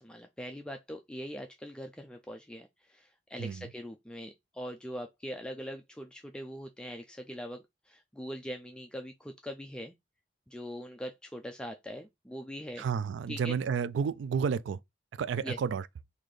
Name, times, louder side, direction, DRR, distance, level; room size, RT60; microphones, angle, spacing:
voice 1, 0.0-9.9 10.5-12.9 13.3-13.5 15.4-15.6, equal, 5° left, 0.3 m, -42 dB
voice 2, 3.4-3.7 12.8-14.8 15.1-15.9, right 6 dB, 85° right, 0.3 m, -31 dB
3.9 x 2.7 x 3.2 m
head